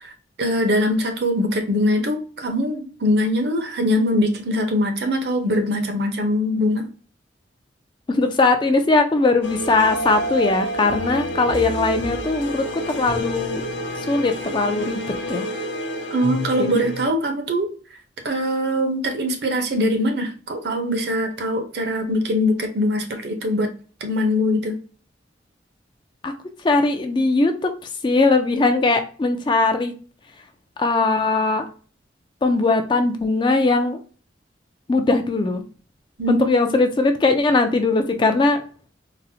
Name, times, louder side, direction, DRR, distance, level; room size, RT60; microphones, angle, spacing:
voice 1, 0.4-6.9 16.1-17.7 18.2-23.7 24.0-24.8 36.2-36.6, left 1 dB, 60° right, 5 dB, 0.6 m, -22 dB
voice 2, 8.1-13.6 14.1-15.5 16.6-16.8 26.2-26.3 26.6-27.7 28.0-29.9 30.8-31.7 32.4-34.0 34.9-35.6 36.3-38.6, left 3 dB, 25° left, 7 dB, 0.3 m, -20 dB
sound 1, 9.4-17.1, equal, 75° left, 0.6 m, -28 dB
3.9 x 2.0 x 2.6 m, 0.39 s
head